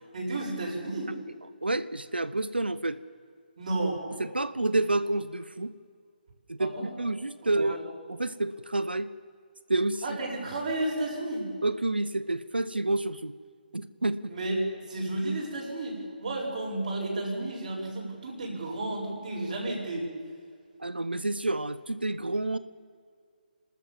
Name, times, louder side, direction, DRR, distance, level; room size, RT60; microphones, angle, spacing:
voice 1, 0.1-1.1 3.6-4.0 6.6-6.9 7.6-7.8 10.0-11.5 14.3-14.6 14.9-20.1, right 2 dB, 50° right, -3 dB, 8.0 m, -32 dB
voice 2, 1.6-3.0 4.2-5.7 6.5-7.8 8.1-9.1 9.7-10.2 11.6-13.3 13.7-14.3 20.8-22.6, right 2 dB, 85° right, 15 dB, 0.9 m, -29 dB
29.5 x 13.5 x 7.4 m, 2.1 s
figure-of-eight pair, 145°, 5 cm